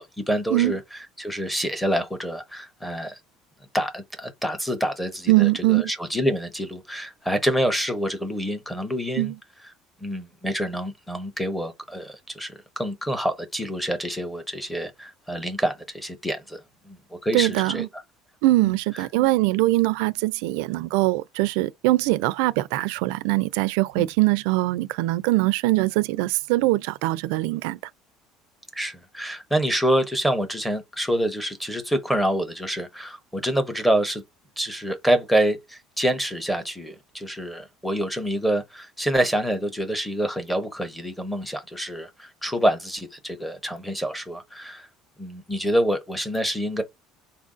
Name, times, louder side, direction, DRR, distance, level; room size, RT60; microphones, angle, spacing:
voice 1, 0.0-3.2 3.7-9.3 10.0-16.6 16.8-18.0 18.6-18.7 24.0-24.1 28.7-34.2 34.6-44.9 45.2-46.8, right 1 dB, ahead, 0.7 m, -27 dB
voice 2, 5.3-5.9 9.2-9.4 17.3-17.9 18.4-27.8, right 19 dB, 80° right, 0.4 m, -22 dB
4.3 x 2.5 x 3.6 m
cardioid pair, 175°, 0 cm